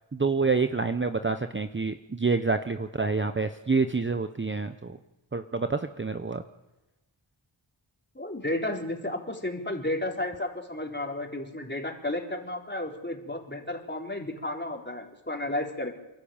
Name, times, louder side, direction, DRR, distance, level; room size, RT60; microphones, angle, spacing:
voice 1, 0.1-5.0 5.3-6.4, right 4 dB, 25° right, 9 dB, 0.9 m, -27 dB
voice 2, 8.1-16.0, left 1 dB, 20° left, 1 dB, 3.9 m, -32 dB
28.0 x 11.5 x 8.8 m, 1.0 s
cardioid pair, 55°, 49 cm